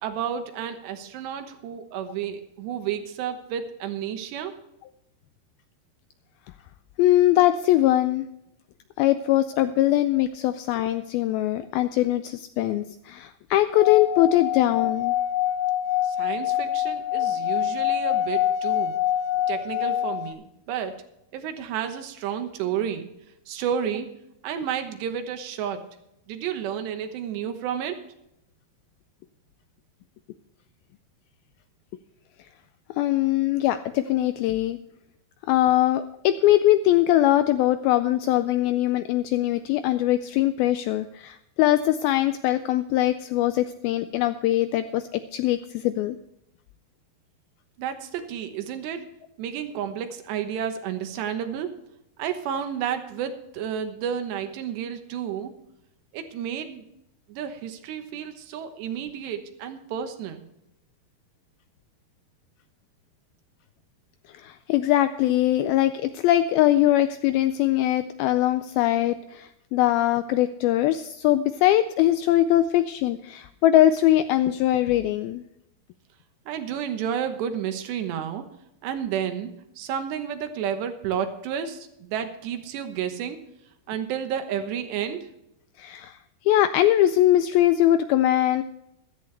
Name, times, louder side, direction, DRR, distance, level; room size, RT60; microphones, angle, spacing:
voice 1, 0.0-4.6 16.0-19.0 19.5-21.0 21.3-23.1 23.5-24.1 24.4-25.8 26.3-28.0 47.8-49.0 49.4-51.8 52.2-55.5 56.1-56.8 57.3-60.5 76.5-78.4 78.8-83.4 83.9-85.3, right 8 dB, 85° right, 7 dB, 3.4 m, -31 dB
voice 2, 7.0-8.3 9.0-15.2 33.0-34.8 35.5-46.2 64.4-75.4 85.8-86.1 86.5-88.6, left 13 dB, 85° left, 11 dB, 2.1 m, -21 dB
Singing / Glass, 13.7-20.3, left 11 dB, 65° left, 2.4 m, -25 dB
15.5 x 13.0 x 3.3 m, 0.83 s
omnidirectional pair, 4.8 m